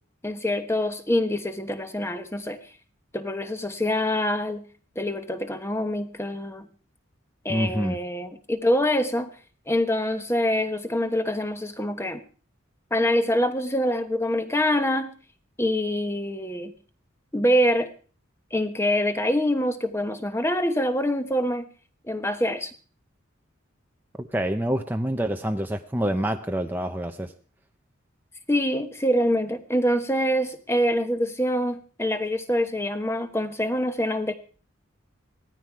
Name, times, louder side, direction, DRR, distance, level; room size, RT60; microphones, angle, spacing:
voice 1, 0.2-2.6 3.1-4.6 4.9-6.7 7.4-9.3 9.7-12.2 12.9-15.1 15.6-16.7 17.3-17.9 18.5-21.6 22.1-22.7 28.5-34.4, equal, 10° left, 9 dB, 1.1 m, -25 dB
voice 2, 7.5-8.0 24.2-27.3, right 1 dB, 10° right, 5 dB, 0.7 m, -27 dB
16.5 x 13.5 x 4.7 m, 0.39 s
head